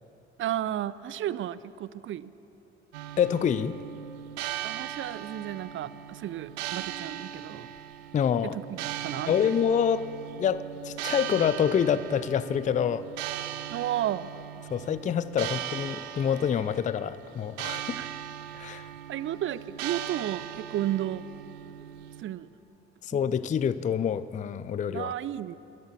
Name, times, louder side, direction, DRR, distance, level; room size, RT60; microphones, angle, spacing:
voice 1, 0.4-2.3 4.6-7.7 8.4-9.5 13.7-14.3 18.0-18.1 19.1-21.2 22.2-22.5 24.9-25.6, right 12 dB, 40° right, 18 dB, 0.5 m, -33 dB
sound 1, 2.9-22.2, right 11 dB, 70° right, 0.7 m, -39 dB
voice 2, 3.2-3.8 8.1-8.6 9.3-10.1 10.4-13.1 14.7-18.1 18.5-18.9 23.0-25.1, left 8 dB, 25° left, 16 dB, 0.4 m, -27 dB
13.5 x 11.0 x 8.7 m, 2.9 s
figure-of-eight pair, 45°, 33 cm